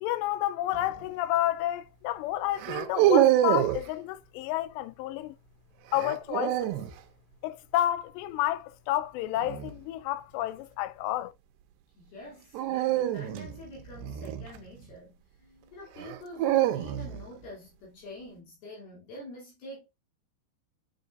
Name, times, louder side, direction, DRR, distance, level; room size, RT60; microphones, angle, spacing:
voice 1, 0.0-5.3 5.9-6.7 7.4-11.3, left 14 dB, 85° left, 2.8 m, -30 dB
sound 1, 0.7-1.1 2.6-3.9 5.9-6.9 9.4-9.8 12.5-14.9 16.0-17.3, right 13 dB, 85° right, 3.0 m, -26 dB
voice 2, 12.0-19.9, equal, 65° left, 4.8 m, -46 dB
9.9 x 6.7 x 2.5 m
omnidirectional pair, 4.9 m